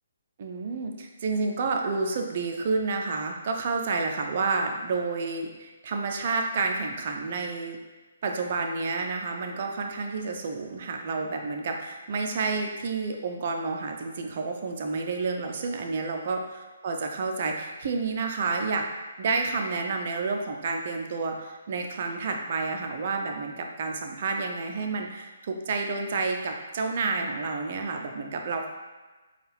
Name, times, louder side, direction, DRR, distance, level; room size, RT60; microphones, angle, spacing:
voice 1, 0.4-7.8 8.2-16.4 16.8-18.8 19.2-28.7, right 4 dB, 50° right, 3 dB, 0.5 m, -30 dB
4.3 x 2.4 x 3.4 m, 1.2 s
figure-of-eight pair, 135°, 0 cm